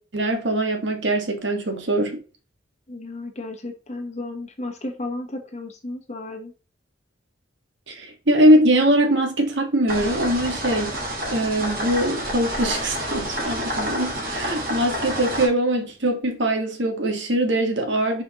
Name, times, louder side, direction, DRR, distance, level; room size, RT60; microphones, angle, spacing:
voice 1, 0.1-2.2 7.9-11.0 11.3-18.2, right 1 dB, 70° right, 1.5 m, -22 dB
voice 2, 2.9-6.5, left 2 dB, 35° left, 1.0 m, -33 dB
sound 1, 9.9-15.5, equal, 50° right, 1.7 m, -29 dB
6.3 x 5.1 x 3.0 m
head